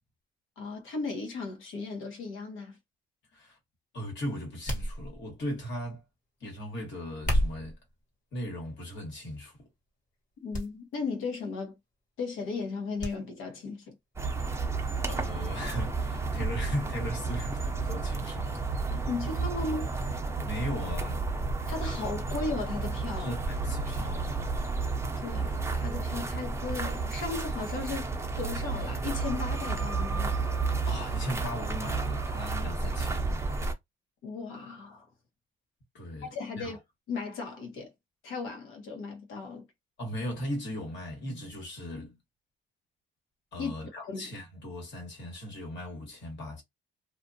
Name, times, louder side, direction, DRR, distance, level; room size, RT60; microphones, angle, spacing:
voice 1, 0.6-2.8 10.4-11.8 12.2-13.9 18.9-19.9 21.7-23.3 25.2-30.3 34.2-35.1 36.2-36.8 37.1-37.9 38.2-39.7 43.6-43.7 44.1-44.3, left 4 dB, 85° left, 1.1 m, -36 dB
voice 2, 3.9-6.0 6.4-7.8 8.3-9.6 15.1-18.5 18.8-19.1 20.4-21.2 23.2-24.4 30.8-33.4 35.9-36.8 40.0-42.2 43.5-46.6, equal, 65° left, 1.4 m, -37 dB
sound 1, 4.7-5.5 7.1-7.8 8.6-9.0 9.4-9.5 10.5-10.7 11.0-11.1 13.0-13.2 13.5-13.6, equal, 40° left, 1.3 m, -30 dB
sound 2, 14.2-33.7, right 3 dB, 15° right, 0.6 m, -32 dB
2.4 x 2.3 x 2.6 m
cardioid pair, 90°, 20 cm